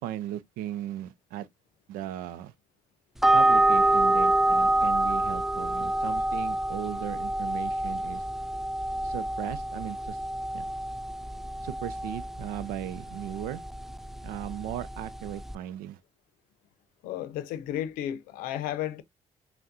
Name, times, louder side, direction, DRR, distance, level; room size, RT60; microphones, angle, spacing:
voice 1, 0.0-1.5 1.9-2.5 3.3-8.2 9.0-10.2 10.5-10.7 11.6-13.6 14.2-16.0, right 12 dB, 85° right, 0.5 m, -37 dB
sound 1, 3.2-15.6, right 1 dB, ahead, 0.3 m, -27 dB
voice 2, 17.0-19.0, left 11 dB, 85° left, 0.6 m, -33 dB
5.8 x 2.2 x 2.6 m
supercardioid pair, 65°, 14 cm